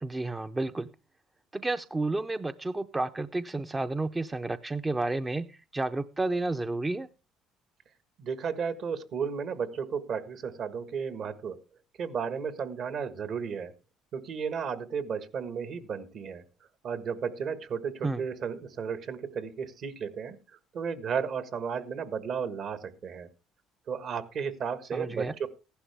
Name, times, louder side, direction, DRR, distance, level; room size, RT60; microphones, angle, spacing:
voice 1, 0.0-0.9 1.5-7.1 18.0-18.2 24.9-25.3, right 2 dB, 15° right, 10 dB, 0.6 m, -31 dB
voice 2, 8.2-11.6 12.0-13.7 14.1-16.4 16.8-20.4 20.7-23.3 23.9-25.5, right 6 dB, 55° right, 13 dB, 1.5 m, -33 dB
15.0 x 11.5 x 3.5 m, 0.30 s
cardioid pair, 95°, 0 cm